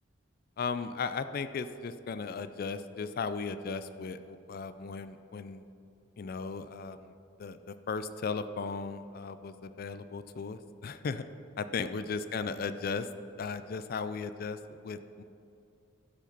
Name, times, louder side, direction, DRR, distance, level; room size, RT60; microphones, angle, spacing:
voice 1, 0.6-5.6 6.2-7.1 7.4-11.2 11.6-13.1 13.4-15.2, left 5 dB, 45° left, 12 dB, 0.4 m, -36 dB
13.0 x 5.0 x 5.3 m, 2.6 s
head